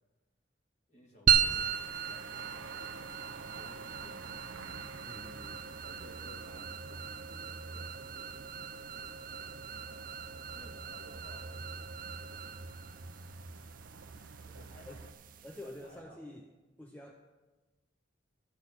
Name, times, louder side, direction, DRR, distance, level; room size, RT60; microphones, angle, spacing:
voice 1, 0.9-3.2 3.6-4.7 5.7-10.1 10.6-11.9 12.3-12.6 14.4-15.0 15.6-16.2, equal, 35° left, -1 dB, 2.5 m, -58 dB
sound 1, 1.3-15.9, right 8 dB, 45° right, 0.6 m, -36 dB
sound 2, 1.4-15.1, right 3 dB, 85° right, 0.7 m, -49 dB
voice 2, 5.0-5.6 14.9-15.0 15.4-16.5 16.8-17.1, left 1 dB, 10° left, 2 dB, 0.7 m, -47 dB
12.5 x 6.4 x 7.8 m, 1.2 s
head